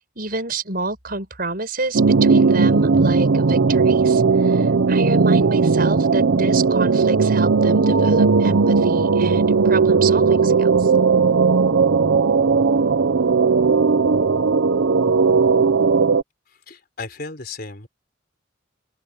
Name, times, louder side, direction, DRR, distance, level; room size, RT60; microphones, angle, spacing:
voice 1, 0.0-10.9, right 3 dB, 50° right, 6.4 m, -28 dB
sound 1, 1.9-16.2, right 4 dB, 80° right, 0.7 m, -17 dB
voice 2, 16.5-17.9, left 3 dB, 55° left, 3.9 m, -35 dB
open air
head